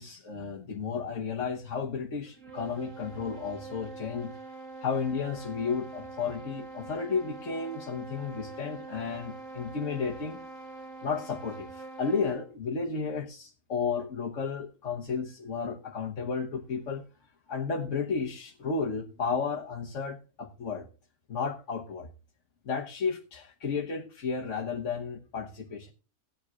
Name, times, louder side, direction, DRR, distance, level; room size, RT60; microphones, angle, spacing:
voice 1, 0.0-4.3 4.8-10.4 11.0-17.0 17.5-20.9 21.3-22.1 22.6-25.9, left 5 dB, 60° left, -1 dB, 1.5 m, -33 dB
sound 1, 2.3-12.6, right 3 dB, 60° right, 2.0 m, -44 dB
17.0 x 10.5 x 2.4 m, 0.34 s
omnidirectional pair, 1.5 m